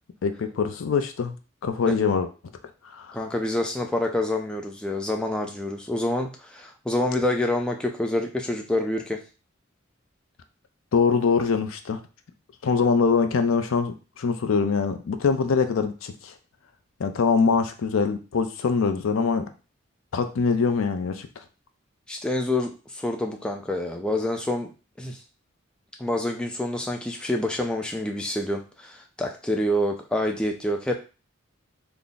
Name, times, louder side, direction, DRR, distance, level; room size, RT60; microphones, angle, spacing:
voice 1, 0.2-1.3 1.6-2.3 2.9-3.1 10.9-12.0 12.6-16.3 17.0-19.4 20.1-21.3, left 5 dB, 75° left, 8 dB, 0.4 m, -23 dB
voice 2, 3.1-9.2 22.1-24.7 25.0-25.2 26.0-30.9, left 1 dB, 5° left, 2 dB, 0.3 m, -27 dB
3.4 x 2.0 x 3.9 m, 0.33 s
head